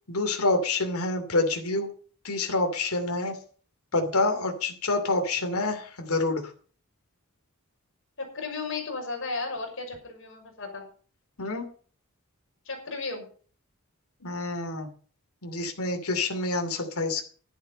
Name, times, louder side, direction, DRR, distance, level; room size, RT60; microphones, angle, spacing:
voice 1, 0.1-1.9 2.2-3.4 3.9-6.5 11.4-11.7 14.2-14.9 15.4-17.2, left 2 dB, 75° left, 4 dB, 2.8 m, -27 dB
voice 2, 8.2-10.8 12.7-13.3, left 3 dB, 60° left, 2 dB, 6.1 m, -34 dB
12.0 x 11.0 x 5.4 m, 0.42 s
head